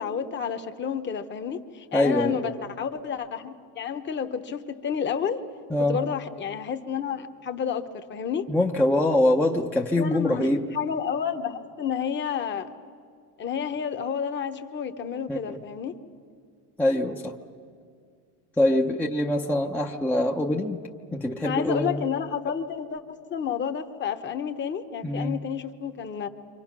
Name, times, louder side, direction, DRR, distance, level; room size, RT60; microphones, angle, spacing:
voice 1, 0.0-5.4 5.8-8.4 10.0-12.7 13.4-15.9 18.7-18.8 21.4-23.0 23.3-26.3, left 7 dB, 25° left, 9 dB, 0.9 m, -30 dB
voice 2, 1.9-2.5 5.7-6.0 8.5-10.7 15.3-15.6 16.8-17.3 18.6-20.8 21.1-22.0 25.0-25.4, left 1 dB, 5° left, -1 dB, 0.6 m, -24 dB
29.0 x 25.5 x 6.0 m, 2.2 s
supercardioid pair, 145°, 46 cm